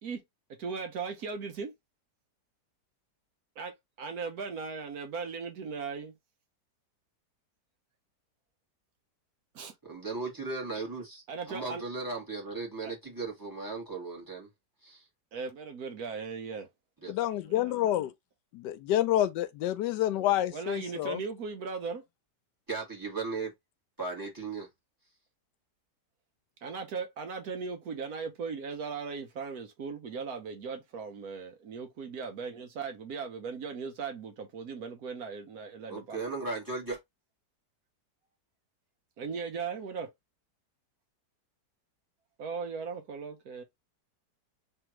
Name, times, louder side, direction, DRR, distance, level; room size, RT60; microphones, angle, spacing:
voice 1, 0.6-1.7 3.6-6.1 9.5-9.7 11.3-11.8 12.8-12.9 15.3-16.7 17.5-17.8 20.2-22.0 26.6-36.2 39.2-40.1 42.4-43.6, right 5 dB, 65° right, 1.3 m, -38 dB
voice 2, 9.8-14.5 14.8-15.0 17.0-17.1 22.7-23.5 24.0-24.7 35.9-37.0, right 3 dB, 10° right, 1.9 m, -36 dB
voice 3, 17.1-18.1 18.5-21.2, left 12 dB, 80° left, 1.2 m, -28 dB
3.6 x 3.4 x 3.0 m
omnidirectional pair, 1.8 m